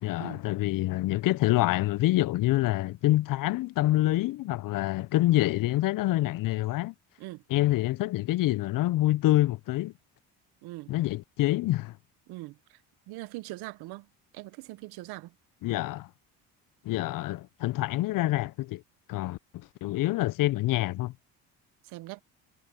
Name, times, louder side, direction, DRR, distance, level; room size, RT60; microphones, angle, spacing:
voice 1, 0.0-6.9 7.5-9.9 10.9-12.0 15.6-16.1 16.8-18.8 19.1-19.4 19.8-21.1, left 16 dB, 55° left, 0.6 m, -26 dB
voice 2, 10.6-10.9 12.3-12.8 13.1-14.1 14.3-15.4 21.8-22.2, right 19 dB, 75° right, 1.2 m, -41 dB
supercardioid pair, 80°, 39 cm